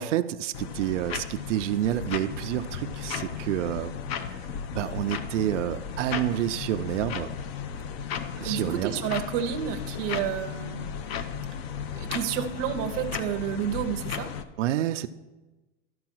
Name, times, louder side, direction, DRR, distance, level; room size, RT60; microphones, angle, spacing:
voice 1, 0.0-3.9 4.3-4.4 4.7-7.3 8.4-8.9 14.6-15.1, right 12 dB, 75° right, 9 dB, 0.6 m, -28 dB
sound 1, 0.5-14.4, left 7 dB, 55° left, 0.7 m, -35 dB
voice 2, 8.4-10.8 11.9-14.3, right 9 dB, 30° right, 5 dB, 0.6 m, -30 dB
12.0 x 4.7 x 6.1 m, 1.1 s
supercardioid pair, 165°, 36 cm